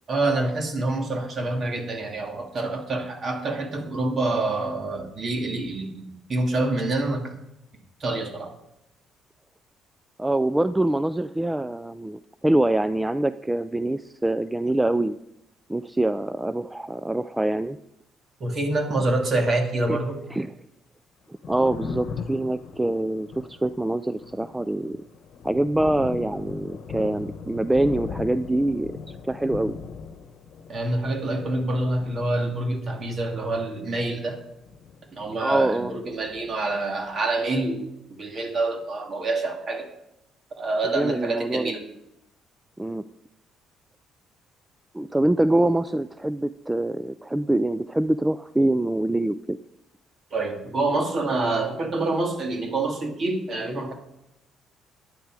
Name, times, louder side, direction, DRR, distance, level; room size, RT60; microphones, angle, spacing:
voice 1, 0.1-7.3 8.0-8.5 18.4-20.2 30.7-34.4 35.1-39.9 40.6-41.8 50.3-53.9, right 2 dB, 40° right, 3 dB, 2.3 m, -26 dB
voice 2, 10.2-15.2 15.7-17.8 19.9-20.0 20.3-20.5 21.5-25.0 25.4-29.0 29.2-29.8 35.4-35.9 40.8-41.7 42.8-43.0 44.9-49.6, right 1 dB, 10° right, 13 dB, 0.3 m, -24 dB
Thunder, 21.2-35.7 35.9-37.2, left 5 dB, 60° left, 1.1 m, -40 dB
11.5 x 10.0 x 4.8 m, 0.86 s
cardioid pair, 115°, 0 cm